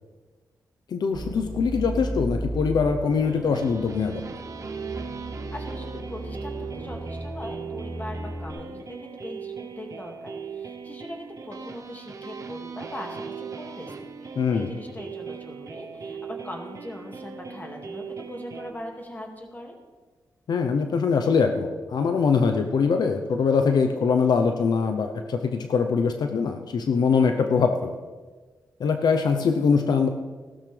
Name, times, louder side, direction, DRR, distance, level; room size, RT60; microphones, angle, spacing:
voice 1, 0.9-4.2 14.4-14.7 20.5-27.9 28.8-30.1, left 5 dB, 75° left, 6 dB, 0.8 m, -23 dB
sound 1, 1.1-8.5, right 1 dB, 30° right, 3.9 m, -35 dB
sound 2, 3.2-18.7, right 6 dB, 50° right, 0.8 m, -39 dB
voice 2, 5.5-19.8, left 1 dB, 25° left, 2 dB, 2.2 m, -40 dB
16.0 x 12.5 x 3.4 m, 1.4 s
cardioid pair, 90°, 7 cm